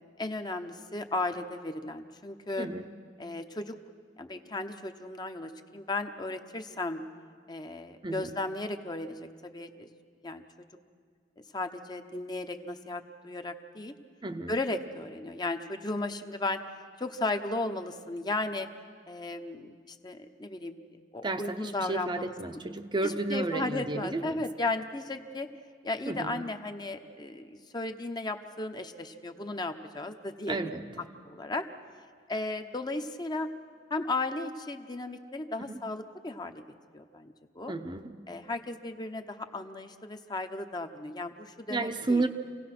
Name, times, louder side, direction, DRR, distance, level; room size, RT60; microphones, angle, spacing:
voice 1, 0.0-2.7 3.2-3.8 4.2-7.0 7.5-9.9 10.2-10.4 11.5-13.9 14.5-16.6 17.0-18.7 19.1-20.8 21.1-22.3 23.0-25.5 25.8-30.6 31.2-31.7 32.3-33.5 33.9-36.6 36.9-37.7 38.3-42.2, left 2 dB, 25° left, 7 dB, 0.9 m, -35 dB
voice 2, 2.6-2.9 8.0-8.4 14.2-14.6 21.2-24.4 26.1-26.5 30.5-31.1 35.6-35.8 37.7-38.2 41.7-42.3, right 2 dB, 25° right, 7 dB, 0.7 m, -32 dB
28.0 x 17.0 x 6.0 m, 2.1 s
head